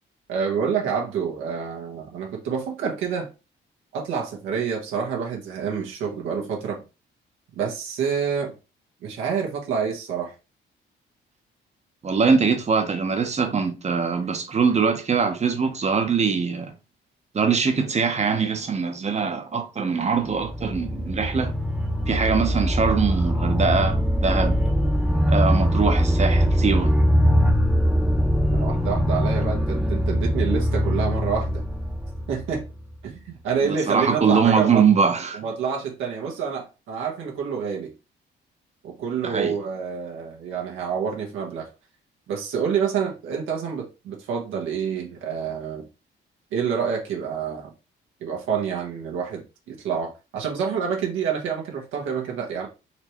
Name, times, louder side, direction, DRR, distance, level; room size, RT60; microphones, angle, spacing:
voice 1, 0.3-3.3 3.9-6.8 7.5-8.5 9.0-10.3 28.5-31.6 32.3-32.7 33.0-34.9 35.3-37.9 38.8-41.7 42.3-45.9 46.5-47.7 48.2-52.7, right 6 dB, 90° right, 1.2 m, -28 dB
voice 2, 12.0-16.7 17.3-21.5 22.1-24.6 25.3-26.9 33.6-35.4 39.2-39.6, right 5 dB, 35° right, 0.8 m, -22 dB
sound 1, 20.1-32.9, equal, 5° right, 0.8 m, -22 dB
4.2 x 3.2 x 3.0 m
cardioid pair, 90°, 20 cm